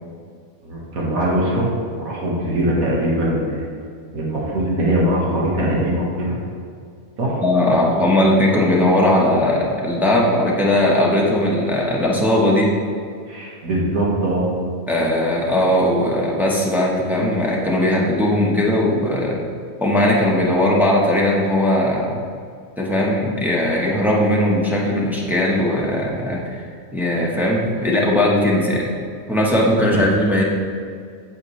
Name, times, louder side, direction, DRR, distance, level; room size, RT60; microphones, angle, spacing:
voice 1, 0.6-1.7 2.0-3.7 4.1-6.4 7.2-7.4 13.3-14.5 29.9-30.0, right 1 dB, 85° right, -4 dB, 1.9 m, -21 dB
voice 2, 7.4-12.7 14.9-19.4 19.8-22.2 22.8-26.7 26.9-28.9 29.3-30.4, left 1 dB, ahead, -4 dB, 1.0 m, -18 dB
8.4 x 7.4 x 3.2 m, 2.2 s
omnidirectional pair, 1.4 m